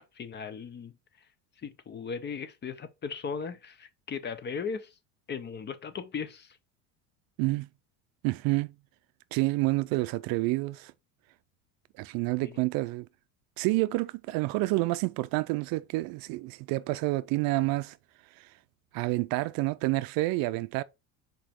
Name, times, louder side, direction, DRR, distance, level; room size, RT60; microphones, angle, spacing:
voice 1, 0.1-0.9 1.6-4.9 5.3-6.6 12.4-12.6, left 6 dB, 25° left, 0.7 m, -37 dB
voice 2, 7.4-7.7 8.2-8.7 9.3-10.9 12.0-13.1 13.6-18.0 18.9-20.8, right 20 dB, 60° right, 0.5 m, -28 dB
5.0 x 4.5 x 4.3 m
supercardioid pair, 120°, 41 cm